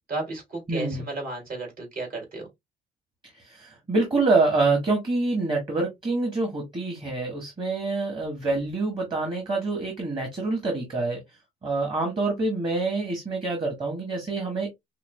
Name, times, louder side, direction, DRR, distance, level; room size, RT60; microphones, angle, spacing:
voice 1, 0.1-2.5, right 2 dB, 60° right, 2.7 m, -33 dB
voice 2, 0.7-1.0 3.3-11.2 11.6-14.7, right 3 dB, 30° right, 1.5 m, -26 dB
5.6 x 2.3 x 2.2 m
cardioid pair, 110°, 17 cm